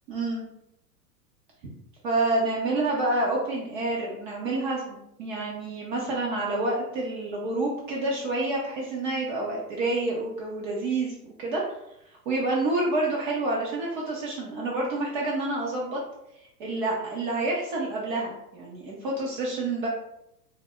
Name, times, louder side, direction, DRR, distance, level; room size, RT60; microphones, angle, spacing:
voice 1, 0.1-0.4 2.0-11.6 12.3-16.0 16.6-19.9, right 2 dB, 35° right, -3 dB, 0.5 m, -28 dB
2.2 x 2.0 x 3.6 m, 0.80 s
figure-of-eight pair, 100°, 47 cm